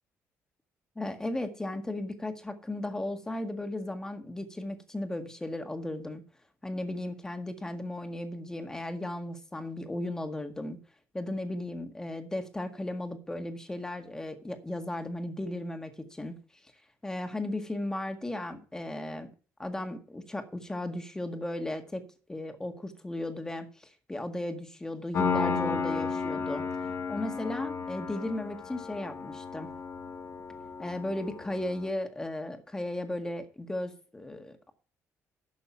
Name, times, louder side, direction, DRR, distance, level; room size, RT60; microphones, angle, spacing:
voice 1, 1.0-6.2 6.6-10.8 11.1-16.4 17.0-19.3 19.6-22.0 22.3-26.6 27.1-29.7 30.8-34.7, left 1 dB, 10° left, 6 dB, 1.8 m, -36 dB
Piano, 25.1-31.9, left 5 dB, 50° left, 1.7 m, -33 dB
11.5 x 6.9 x 5.7 m, 0.39 s
cardioid pair, 115°, 6 cm